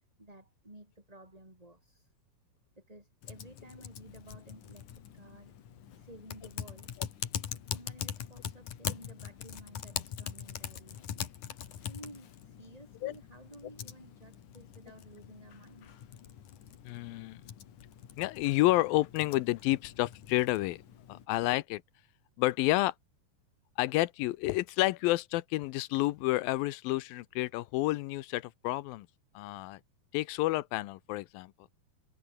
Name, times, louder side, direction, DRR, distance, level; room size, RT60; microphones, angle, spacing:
voice 1, 0.0-2.1 2.8-5.6 6.0-6.9 7.6-16.1, right 1 dB, 10° right, 5.6 m, -54 dB
Typing, 3.2-21.3, left 9 dB, 60° left, 3.3 m, -43 dB
voice 2, 16.9-17.4 18.2-20.8 21.1-21.8 22.4-22.9 23.8-29.1 29.3-29.8 30.1-31.7, left 18 dB, 80° left, 2.5 m, -30 dB
omnidirectional pair, 4.2 m